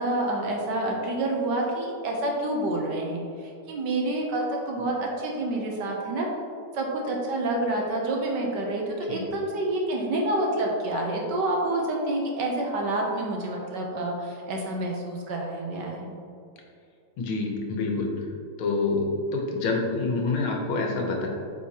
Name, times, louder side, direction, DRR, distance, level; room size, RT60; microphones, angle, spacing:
voice 1, 0.0-6.3 6.7-16.1, right 1 dB, 65° right, 0 dB, 1.4 m, -28 dB
voice 2, 17.2-18.1 18.6-21.3, left 3 dB, 85° left, 0 dB, 1.9 m, -27 dB
8.8 x 4.7 x 2.9 m, 2.4 s
omnidirectional pair, 2.3 m